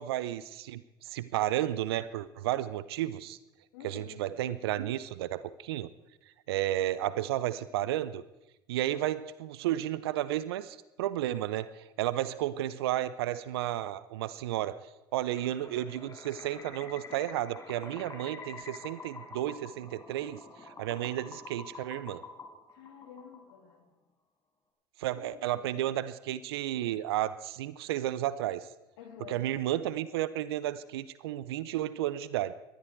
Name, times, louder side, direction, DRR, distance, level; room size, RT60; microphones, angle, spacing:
voice 1, 0.0-3.4 3.8-5.9 6.5-8.2 8.7-14.8 15.1-22.2 25.0-28.7 29.3-32.5, right 13 dB, 85° right, 17 dB, 0.6 m, -32 dB
voice 2, 3.7-4.2 22.7-23.9 25.1-25.9 29.0-29.4, left 8 dB, 80° left, 4 dB, 2.7 m, -50 dB
sound 1, 15.3-23.8, left 3 dB, 25° left, 4.9 m, -47 dB
19.0 x 13.0 x 4.5 m, 0.96 s
hypercardioid pair, 70°, 13 cm